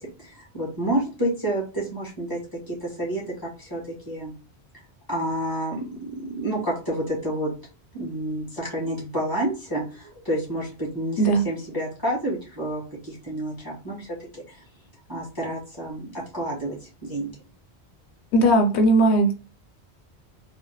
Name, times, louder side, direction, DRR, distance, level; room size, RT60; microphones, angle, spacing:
voice 1, 0.2-2.4 2.7-4.3 4.7-7.5 7.9-14.6 15.1-16.8 17.0-17.3, right 1 dB, 20° left, -5 dB, 1.9 m, -29 dB
voice 2, 18.3-19.3, right 1 dB, 85° left, 5 dB, 0.9 m, -18 dB
4.1 x 2.1 x 2.9 m, 0.34 s
omnidirectional pair, 1.1 m